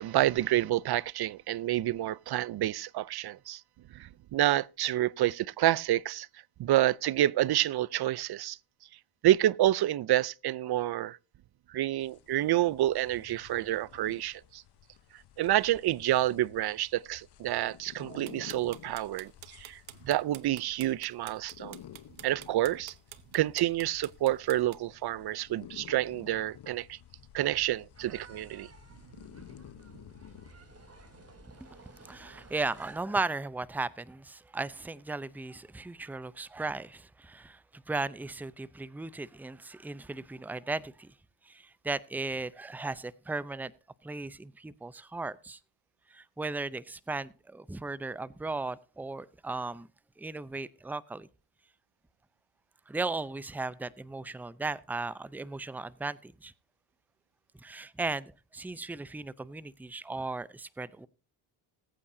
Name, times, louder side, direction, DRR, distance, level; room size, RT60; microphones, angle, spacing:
voice 1, 0.0-3.6 3.9-6.3 6.6-8.6 9.2-11.2 11.7-14.6 15.4-21.8 22.2-22.9 23.3-27.0 27.3-28.7, right 14 dB, 50° right, 0.5 m, -28 dB
sound 1, 12.0-31.4, left 10 dB, 50° left, 1.1 m, -53 dB
sound 2, 18.3-24.8, right 13 dB, 70° right, 1.2 m, -47 dB
sound 3, 27.9-33.0, right 2 dB, 30° right, 3.6 m, -54 dB
voice 2, 32.0-41.1 41.4-43.7 44.0-45.6 46.1-49.9 50.2-51.3 52.9-56.5 57.6-61.1, right 3 dB, 5° right, 0.5 m, -36 dB
20.0 x 8.6 x 2.7 m
cardioid pair, 85°, 49 cm